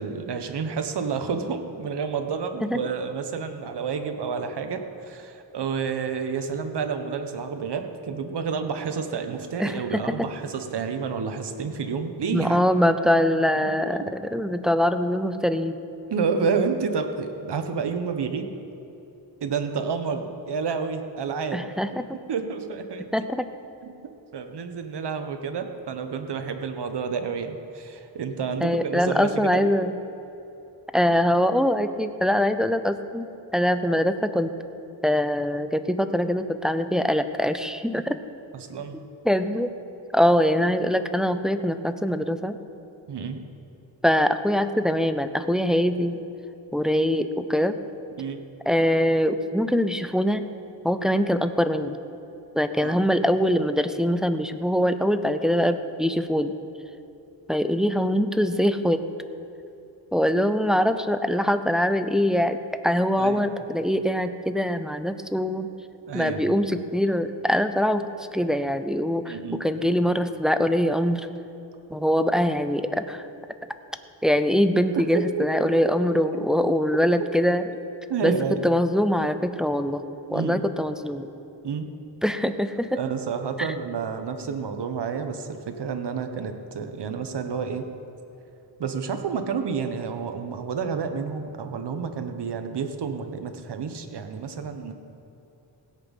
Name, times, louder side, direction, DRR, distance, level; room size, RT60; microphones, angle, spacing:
voice 1, 0.0-12.7 13.6-13.7 14.0-14.1 16.1-18.5 19.4-21.7 22.3-23.1 23.8-29.6 38.5-39.0 43.1-43.4 48.2-48.4 52.8-53.0 63.2-63.5 66.1-66.6 69.3-69.7 74.9-75.2 75.6-75.9 78.1-78.6 80.3-80.7 81.6-81.9 82.9-87.9 88.8-94.9, right 5 dB, 60° right, 7 dB, 1.2 m, -30 dB
voice 2, 9.6-10.2 12.3-15.8 21.5-22.0 23.1-23.5 28.6-29.9 30.9-33.3 33.5-34.5 35.0-38.2 39.2-39.7 40.1-42.6 44.0-46.2 46.7-47.8 48.7-50.5 50.8-52.0 52.6-56.6 57.5-59.0 60.1-62.6 62.8-65.7 66.1-68.1 68.3-71.3 71.9-73.3 74.2-77.6 78.2-80.0 80.3-81.3 82.2-83.0 83.6-83.7, equal, ahead, 9 dB, 0.5 m, -23 dB
17.0 x 8.3 x 5.5 m, 2.9 s
cardioid pair, 90°, 45 cm